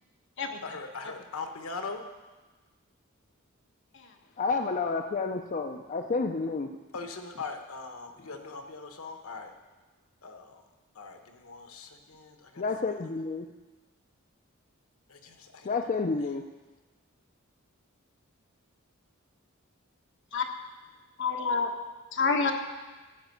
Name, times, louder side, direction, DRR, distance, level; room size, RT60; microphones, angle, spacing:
voice 1, 0.6-2.1 6.9-9.5 10.2-10.6 10.9-12.6 15.1-15.7, left 4 dB, 85° left, 6 dB, 1.1 m, -41 dB
voice 2, 4.4-6.7 12.6-13.5 15.6-16.4, left 4 dB, 35° left, 5 dB, 0.5 m, -30 dB
voice 3, 21.2-21.7 22.1-22.5, left 4 dB, 60° left, 3 dB, 1.3 m, -27 dB
14.5 x 5.3 x 7.8 m, 1.2 s
head